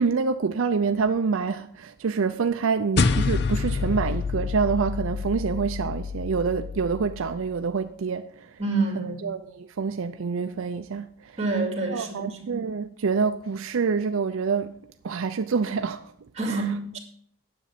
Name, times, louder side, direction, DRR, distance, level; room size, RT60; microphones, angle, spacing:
voice 1, 0.0-8.5 9.0-11.1 11.9-14.8 15.0-16.1 16.5-16.6, right 5 dB, 75° right, 0.5 m, -26 dB
sound 1, 3.0-7.6, left 4 dB, 50° left, 0.5 m, -27 dB
voice 2, 8.6-9.2 11.4-12.4 16.4-17.0, right 3 dB, 30° right, 2.2 m, -27 dB
10.0 x 7.2 x 5.8 m
head